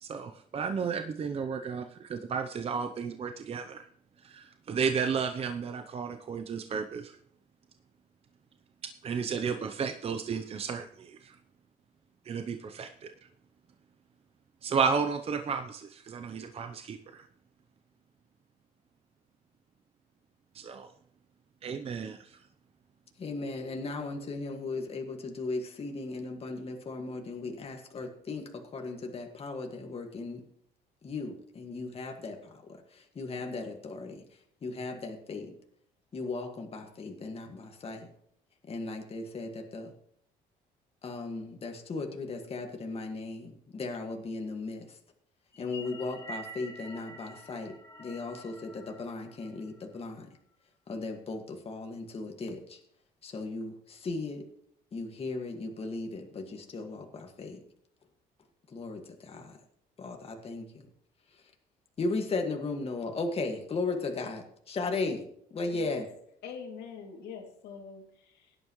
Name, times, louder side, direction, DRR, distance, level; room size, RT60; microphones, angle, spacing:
voice 1, 0.0-3.9 4.2-7.2 9.0-11.3 12.3-13.1 14.6-17.2 20.5-20.9 21.6-22.4, right 6 dB, 35° right, 6 dB, 0.8 m, -33 dB
voice 2, 23.2-30.5 31.0-34.2 34.6-35.5 36.1-38.1 38.7-39.9 41.0-45.0 45.6-50.3 50.9-52.8 53.2-54.5 54.9-57.6 58.7-59.6 60.0-60.9 62.0-66.0, left 3 dB, 35° left, 3 dB, 1.9 m, -36 dB
sound 1, 45.5-50.1, right 1 dB, 15° left, 3.1 m, -47 dB
voice 3, 66.4-68.6, left 6 dB, 80° left, 2 dB, 2.7 m, -43 dB
17.0 x 11.0 x 3.2 m, 0.68 s
cardioid pair, 110°, 17 cm